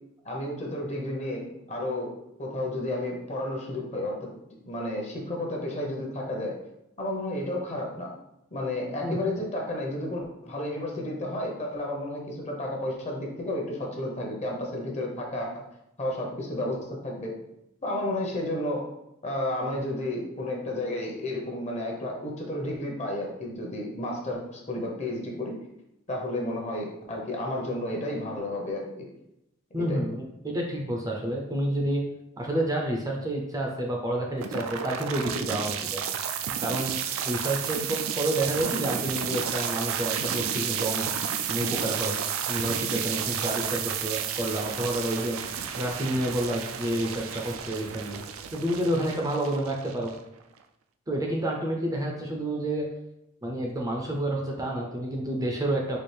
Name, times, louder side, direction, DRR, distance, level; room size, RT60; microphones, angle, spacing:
voice 1, 0.2-2.1 2.4-4.3 4.6-6.6 7.0-8.1 8.5-15.6 16.0-17.4 17.8-18.8 19.2-25.6 26.1-29.1 29.8-30.0, left 1 dB, 35° left, -1 dB, 0.8 m, -32 dB
voice 2, 29.7-32.0 32.4-36.0 36.6-41.1 41.5-42.2 42.5-45.4 45.7-48.2 48.5-50.1 51.1-52.9 53.4-56.0, right 1 dB, 20° right, 0 dB, 0.5 m, -29 dB
sound 1, 34.4-50.4, right 8 dB, 85° right, 0.3 m, -32 dB
4.3 x 2.4 x 3.3 m, 0.84 s
head